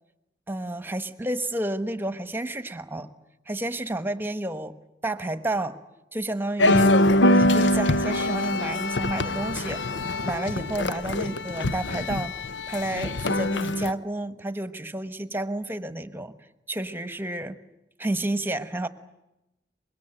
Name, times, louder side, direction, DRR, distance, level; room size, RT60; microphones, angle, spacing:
voice 1, 0.5-3.1 3.5-4.7 5.0-5.8 6.1-7.0 7.2-9.8 10.2-12.3 12.7-16.3 16.7-17.6 18.0-18.9, right 1 dB, 10° right, 11 dB, 1.2 m, -30 dB
sound 1, 6.6-13.9, left 1 dB, 90° left, 0.9 m, -23 dB
24.5 x 22.0 x 9.0 m, 0.93 s
head